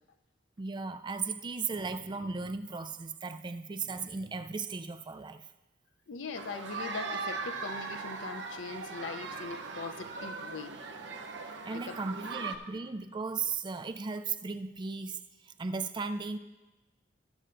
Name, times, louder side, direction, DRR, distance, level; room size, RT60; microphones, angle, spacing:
voice 1, 0.6-5.5 11.4-16.4, right 4 dB, 25° right, 9 dB, 0.4 m, -36 dB
voice 2, 6.1-10.8 11.7-12.0, left 4 dB, 75° left, 10 dB, 0.6 m, -41 dB
sound 1, 6.4-12.6, right 4 dB, 65° right, 0.9 m, -39 dB
20.5 x 7.7 x 2.6 m, 1.1 s
head